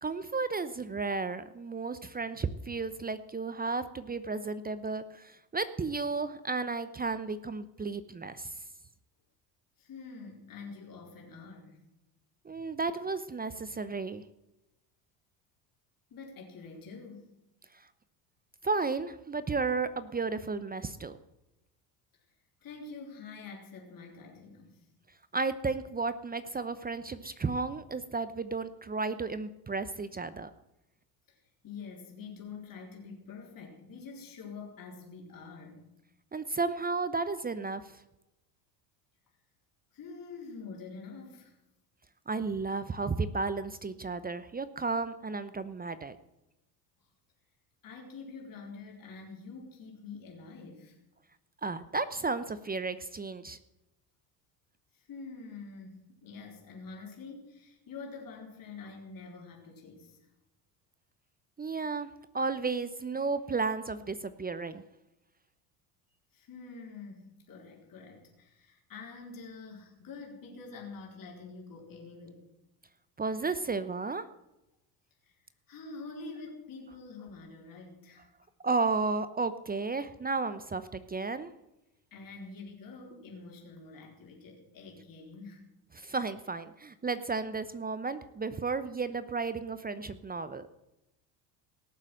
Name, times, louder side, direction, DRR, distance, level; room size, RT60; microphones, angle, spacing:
voice 1, 0.0-8.5 12.4-14.2 18.6-21.2 25.3-30.5 36.3-37.9 42.3-46.2 51.6-53.6 61.6-62.1 62.3-64.8 73.2-74.3 78.6-81.5 85.9-90.7, right 4 dB, 20° right, 13 dB, 0.9 m, -33 dB
voice 2, 9.8-11.8 12.5-12.6 16.1-17.4 22.6-24.9 31.3-35.8 39.9-41.6 47.8-51.0 54.9-60.2 66.3-72.4 75.2-75.3 75.7-78.3 82.1-85.7, left 4 dB, 45° left, -1 dB, 4.4 m, -46 dB
18.0 x 7.4 x 7.8 m, 0.92 s
hypercardioid pair, 75°, 48 cm